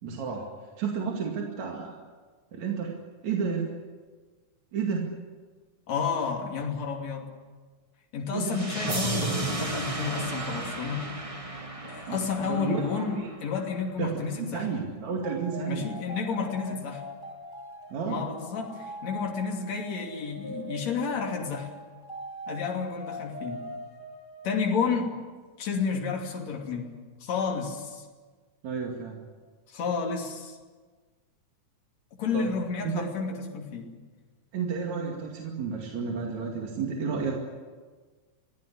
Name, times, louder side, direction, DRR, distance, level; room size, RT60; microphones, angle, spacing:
voice 1, 0.0-0.5 0.8-2.0 2.5-2.9 3.2-3.7 4.7-5.1 8.3-8.6 12.1-13.3 14.0-15.8 17.9-18.2 28.6-29.2 32.3-32.5 32.8-33.0 34.5-37.4, right 5 dB, 65° right, 0 dB, 3.6 m, -31 dB
voice 2, 5.9-7.3 8.1-11.1 11.8-14.7 15.7-17.0 18.1-21.7 22.5-23.6 24.4-25.1 25.6-26.9 27.2-28.0 29.7-30.6 32.2-33.9, left 5 dB, 60° left, 0 dB, 4.0 m, -31 dB
sound 1, 8.5-13.4, right 2 dB, 20° right, 1.0 m, -33 dB
sound 2, 15.2-25.0, right 1 dB, 10° left, 2.1 m, -42 dB
25.0 x 16.5 x 9.9 m, 1.4 s
omnidirectional pair, 3.5 m